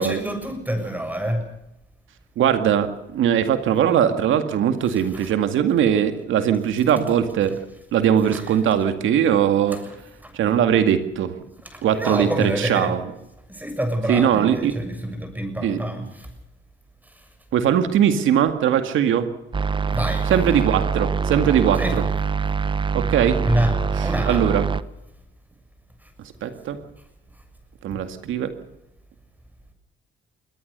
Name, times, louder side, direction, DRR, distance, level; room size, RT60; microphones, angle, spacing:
voice 1, 0.0-1.4 5.1-5.3 10.2-10.3 11.6-12.9 13.5-16.3 19.9-20.3 21.8-21.9 23.4-23.7 24.0-24.4, equal, 10° right, 7 dB, 7.0 m, -26 dB
voice 2, 2.4-7.5 7.9-9.8 10.3-11.3 11.8-13.1 14.1-14.7 15.6-15.8 17.5-19.3 20.3-22.0 22.9-23.5 24.0-24.7 26.4-26.8 27.8-28.5, right 9 dB, 80° right, 9 dB, 2.1 m, -20 dB
sound 1, 19.5-24.8, right 5 dB, 25° right, 0.9 m, -24 dB
22.5 x 18.5 x 6.8 m, 0.87 s
cardioid pair, 90°, 20 cm